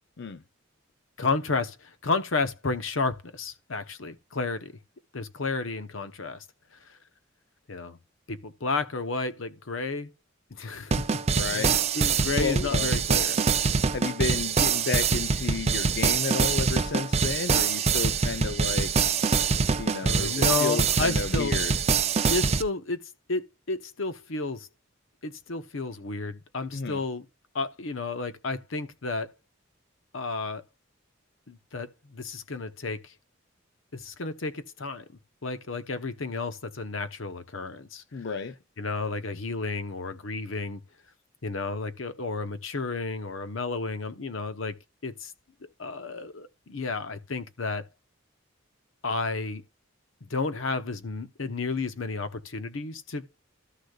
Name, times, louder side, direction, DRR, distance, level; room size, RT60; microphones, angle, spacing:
voice 1, 1.2-4.7 5.1-6.4 7.7-8.0 8.3-10.1 10.5-10.9 11.4-13.4 20.0-21.5 22.3-24.7 25.2-27.2 27.5-29.3 30.1-30.6 31.5-33.1 33.9-35.0 35.4-38.0 38.8-40.8 41.4-44.8 45.0-45.3 45.8-47.9 49.0-49.6 50.3-53.4, left 3 dB, 85° left, 1.0 m, -32 dB
sound 1, 10.9-22.6, right 5 dB, 30° right, 0.6 m, -24 dB
voice 2, 11.3-11.8 12.3-13.0 13.9-18.9 19.8-21.8 26.7-27.0 38.1-38.5, left 5 dB, 60° left, 0.6 m, -32 dB
13.0 x 6.5 x 2.4 m
head